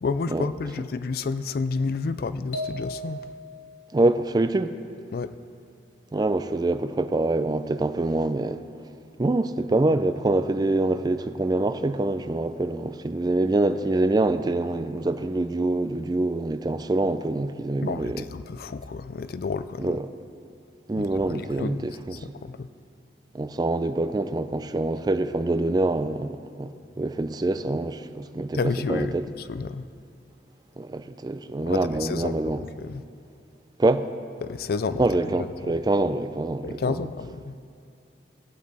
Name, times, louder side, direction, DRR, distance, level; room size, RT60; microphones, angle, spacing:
voice 1, 0.0-3.2 5.1-5.3 17.8-20.0 21.0-22.7 28.5-29.9 31.6-33.0 34.4-35.1 35.4-35.8 36.6-37.6, left 4 dB, 55° left, 0.4 m, -31 dB
sound 1, 2.5-3.7, left 1 dB, 80° left, 1.2 m, -35 dB
voice 2, 3.9-4.7 6.1-8.6 9.2-18.2 19.8-20.0 20.9-21.9 23.3-26.3 26.6-28.6 28.9-29.2 30.8-32.6 33.8-34.1 35.0-37.0, right 2 dB, 25° right, 0.3 m, -25 dB
16.5 x 8.3 x 4.1 m
head